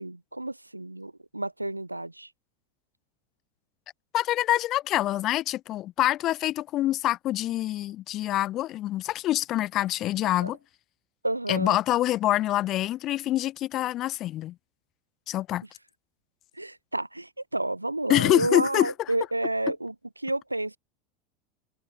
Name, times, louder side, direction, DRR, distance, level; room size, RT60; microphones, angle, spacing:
voice 1, 0.0-2.3 10.2-10.5 11.2-11.8 16.6-20.8, right 2 dB, 85° right, 3.1 m, -30 dB
voice 2, 4.1-10.6 11.5-14.6 15.3-15.6 18.1-18.9, left 14 dB, 40° left, 5.5 m, -26 dB
figure-of-eight pair, 80°, 0 cm